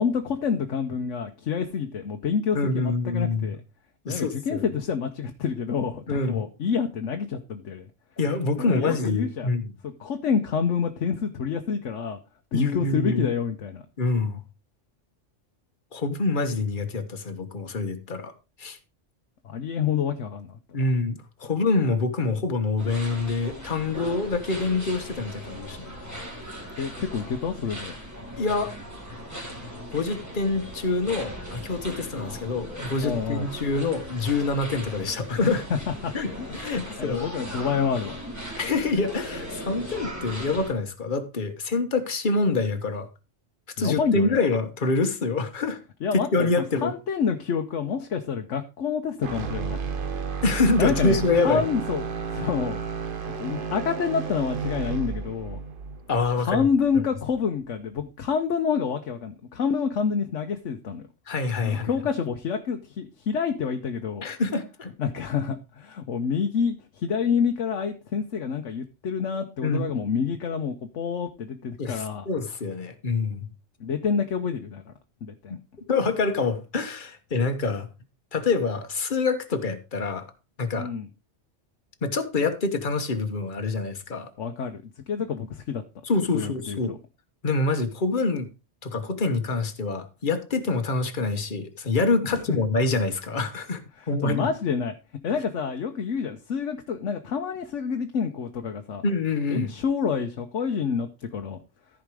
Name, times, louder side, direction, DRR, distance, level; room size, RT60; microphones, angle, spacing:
voice 1, 0.0-3.6 4.0-7.9 8.6-9.5 9.8-12.2 12.5-13.8 19.4-20.6 26.8-27.9 33.0-33.5 35.7-36.5 36.7-38.2 43.8-44.4 46.0-46.5 46.8-49.8 50.8-52.0 52.3-52.8 53.4-55.6 56.4-61.0 61.6-64.2 65.0-72.3 73.8-74.9 75.2-75.6 80.7-81.1 84.4-84.8 85.1-85.8 86.3-87.0 92.3-92.6 94.0-94.9 95.2-99.0 99.5-101.6, left 6 dB, 80° left, 1.2 m, -28 dB
voice 2, 2.5-3.5 4.1-4.6 6.1-6.4 8.2-9.7 12.5-13.3 14.0-14.4 15.9-18.3 18.6-18.8 20.7-25.9 28.4-28.7 29.9-35.6 36.1-37.3 38.6-43.1 43.8-45.8 46.3-46.9 50.4-51.7 56.1-56.7 56.9-57.0 61.3-61.9 64.2-64.9 69.6-69.8 71.8-73.5 75.9-77.9 78.3-80.3 80.6-80.9 82.0-84.3 86.0-86.9 87.4-88.5 88.8-93.8 94.1-94.5 99.0-99.7, left 3 dB, 45° left, 1.4 m, -26 dB
sound 1, 22.8-40.7, equal, 15° right, 2.6 m, -38 dB
sound 2, 49.2-57.4, right 6 dB, 50° right, 1.1 m, -32 dB
14.0 x 5.1 x 4.8 m
omnidirectional pair, 1.2 m